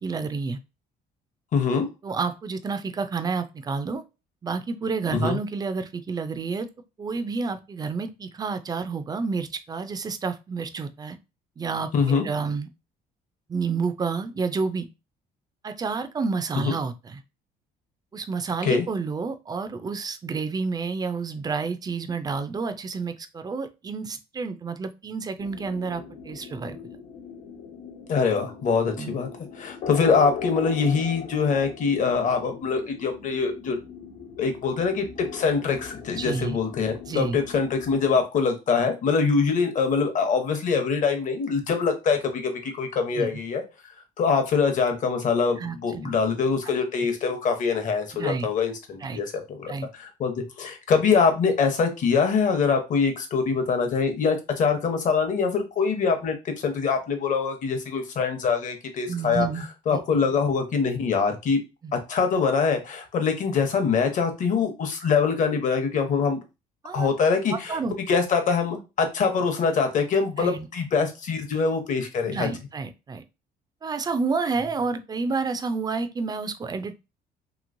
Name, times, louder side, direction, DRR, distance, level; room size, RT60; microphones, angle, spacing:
voice 1, 0.0-0.6 2.0-4.0 4.4-6.7 7.0-11.2 11.6-12.7 13.5-14.9 15.6-17.2 18.1-26.8 29.0-29.2 36.1-36.6 37.1-37.4 43.2-43.3 45.6-46.2 48.1-48.5 49.0-49.2 49.7-49.9 59.1-60.0 61.8-61.9 66.8-67.1 67.5-67.9 70.4-70.7 72.2-73.2 73.8-77.1, right 4 dB, 25° right, 10 dB, 0.4 m, -30 dB
voice 2, 1.5-1.9 5.1-5.4 11.9-12.3 16.6-16.7 18.6-18.8 28.1-29.3 29.6-33.8 34.4-43.6 44.2-59.5 59.9-61.6 62.1-66.4 66.9-67.8 68.1-72.5, left 5 dB, 50° left, 6 dB, 0.9 m, -24 dB
sound 1, 25.4-37.9, left 6 dB, 75° left, 1.1 m, -40 dB
3.0 x 2.9 x 2.6 m, 0.27 s
cardioid pair, 110°, 17 cm